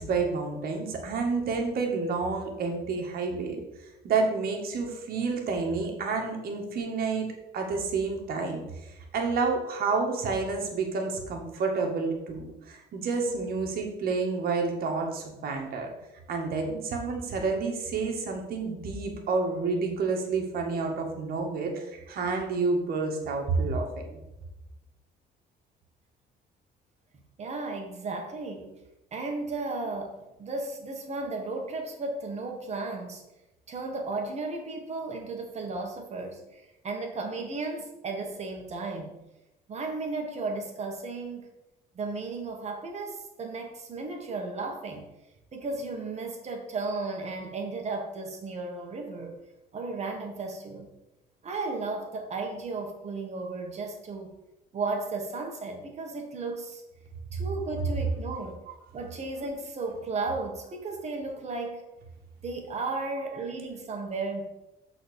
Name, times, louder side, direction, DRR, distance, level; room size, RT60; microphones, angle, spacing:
voice 1, 0.0-3.6 4.0-7.3 7.5-8.6 9.1-15.9 16.3-24.2 58.7-58.8, right 4 dB, 60° right, 2 dB, 1.8 m, -29 dB
voice 2, 27.4-28.7 29.1-33.2 33.7-39.1 39.7-41.4 41.9-45.0 45.5-49.4 49.7-50.9 51.4-54.3 54.7-56.8 57.3-58.6 58.9-61.8 62.4-64.5, right 3 dB, 40° right, 3 dB, 1.7 m, -34 dB
6.4 x 4.2 x 6.4 m, 0.95 s
cardioid pair, 110°, 17 cm